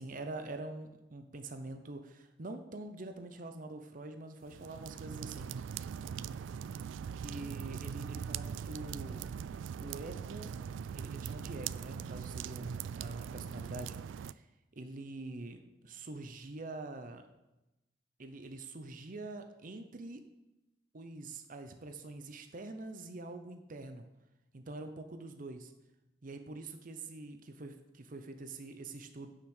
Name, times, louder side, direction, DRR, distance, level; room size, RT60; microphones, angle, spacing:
voice 1, 0.0-5.5 7.2-9.2 9.8-10.5 10.9-14.5 14.7-17.3 18.2-20.2 20.9-24.1 24.5-25.7 26.2-29.3, right 2 dB, 45° right, 7 dB, 0.7 m, -45 dB
sound 1, 4.4-14.3, right 7 dB, 85° right, 0.3 m, -41 dB
9.6 x 6.1 x 6.5 m, 0.97 s
head